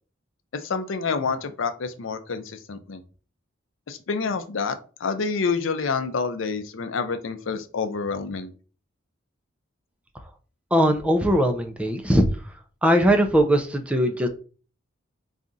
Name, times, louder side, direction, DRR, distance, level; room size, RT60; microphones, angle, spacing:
voice 1, 0.5-3.0 3.9-8.5, left 5 dB, 75° left, 9 dB, 0.5 m, -28 dB
voice 2, 10.7-12.3 12.8-14.3, equal, 5° right, 4 dB, 0.5 m, -20 dB
4.1 x 2.4 x 3.8 m, 0.38 s
head